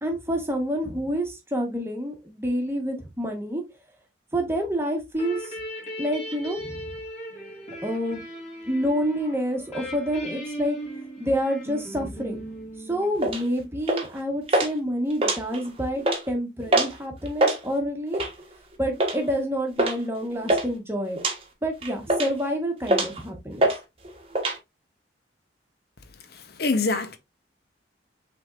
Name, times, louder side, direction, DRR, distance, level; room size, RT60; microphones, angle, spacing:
voice 1, 0.0-3.6 4.3-5.5 6.0-6.9 7.8-8.2 8.7-10.8 11.2-12.4 12.9-18.2 18.8-21.2 21.6-23.7, equal, 15° right, 1.1 m, -28 dB
sound 1, 5.1-13.6, equal, 35° left, 1.9 m, -38 dB
sound 2, 13.2-13.4 13.9-14.2 14.5-14.7 15.1-15.7 16.0-16.2 16.7-17.0 17.3-17.6 18.1-18.4 19.0-19.2 19.8-20.0 20.2-20.7 21.2-21.4 21.8-22.4 22.9-23.2 23.6-23.8 24.0-24.6, right 1 dB, 30° right, 1.1 m, -23 dB
voice 2, 26.3-27.2, left 3 dB, 55° left, 0.8 m, -25 dB
5.9 x 3.5 x 2.5 m
head